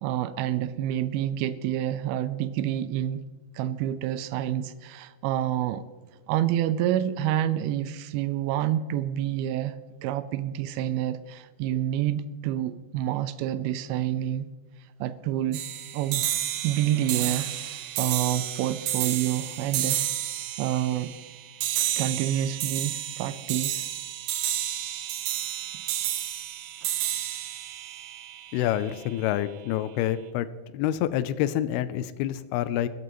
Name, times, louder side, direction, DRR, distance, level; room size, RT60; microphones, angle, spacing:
voice 1, 0.0-3.2 3.5-5.8 6.3-9.8 10.0-14.5 15.0-15.6 15.9-16.3 16.6-20.0 20.6-21.1 22.0-23.9, right 12 dB, 90° right, 2.2 m, -28 dB
sound 1, 15.5-29.0, right 12 dB, 75° right, 2.6 m, -31 dB
voice 2, 28.5-30.5 30.7-32.9, left 12 dB, 85° left, 2.3 m, -27 dB
22.0 x 13.5 x 3.1 m
omnidirectional pair, 5.0 m